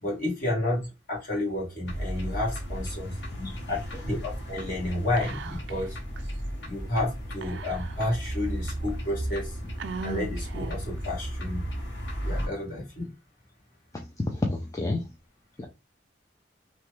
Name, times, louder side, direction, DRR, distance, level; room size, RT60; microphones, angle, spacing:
voice 1, 0.0-3.1 3.7-6.0 6.6-9.5 10.0-11.7 12.2-13.1, left 1 dB, 50° left, 1.4 m, -31 dB
sound 1, 1.9-12.5, equal, 80° left, 1.1 m, -35 dB
voice 2, 3.3-3.8 13.9-15.0 15.6-15.7, left 2 dB, 20° left, 0.4 m, -30 dB
Whispering, 5.2-5.9 6.2-6.3 7.4-8.3 8.9-9.0 9.8-11.0, right 4 dB, 75° right, 0.4 m, -39 dB
3.1 x 2.2 x 3.0 m
head